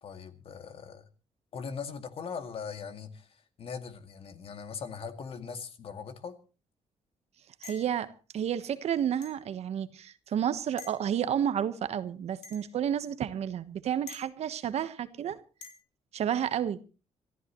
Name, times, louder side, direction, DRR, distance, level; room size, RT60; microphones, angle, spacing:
voice 1, 0.0-1.1 1.5-6.4, left 6 dB, 55° left, 2.2 m, -40 dB
sound 1, 7.6-8.0 9.2-9.4 10.8-11.0 12.4-12.7 14.1-14.3 15.6-15.8, left 4 dB, 85° left, 3.1 m, -46 dB
voice 2, 7.6-15.4 16.1-16.8, right 9 dB, 65° right, 1.2 m, -31 dB
26.0 x 13.5 x 3.1 m
cardioid pair, 100°, 12 cm